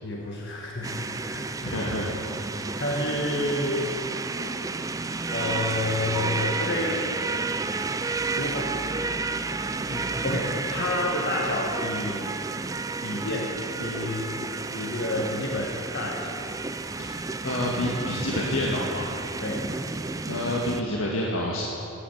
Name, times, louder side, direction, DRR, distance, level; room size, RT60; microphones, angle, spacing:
voice 1, 0.0-1.9 2.8-4.0 5.3-7.0 8.2-12.3 13.0-14.3 14.7-16.4 19.4-19.7, left 2 dB, 50° left, -1 dB, 1.5 m, -30 dB
sound 1, 0.8-20.8, right 3 dB, 15° right, 0.4 m, -31 dB
voice 2, 1.6-2.1 17.1-19.1 20.3-21.6, left 1 dB, 70° left, -3 dB, 1.8 m, -28 dB
14.5 x 10.0 x 8.5 m, 2.9 s
head